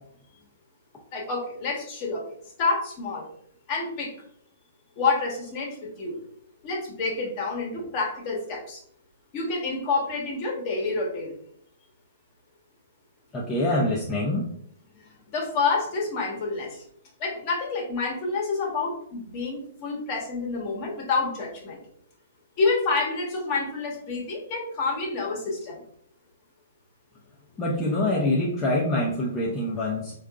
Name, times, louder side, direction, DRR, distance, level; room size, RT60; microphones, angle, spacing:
voice 1, 1.1-2.2 2.6-3.3 3.7-4.1 5.0-6.2 6.6-8.8 9.3-11.3 15.3-16.8 17.2-21.8 22.6-25.8, left 4 dB, 40° left, 0 dB, 1.0 m, -28 dB
voice 2, 13.3-14.4 27.6-30.2, left 1 dB, 15° left, -5 dB, 0.6 m, -25 dB
3.6 x 2.4 x 2.3 m, 0.66 s
hypercardioid pair, 130°, 0 cm